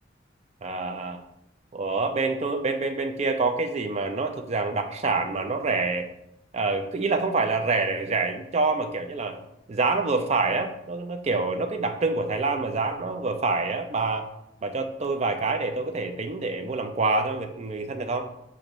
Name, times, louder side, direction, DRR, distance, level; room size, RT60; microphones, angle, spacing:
voice 1, 0.6-1.2 1.7-6.0 6.5-9.4 9.7-14.3 14.6-18.3, right 3 dB, 35° right, 5 dB, 0.4 m, -26 dB
6.5 x 2.6 x 3.0 m, 0.80 s
head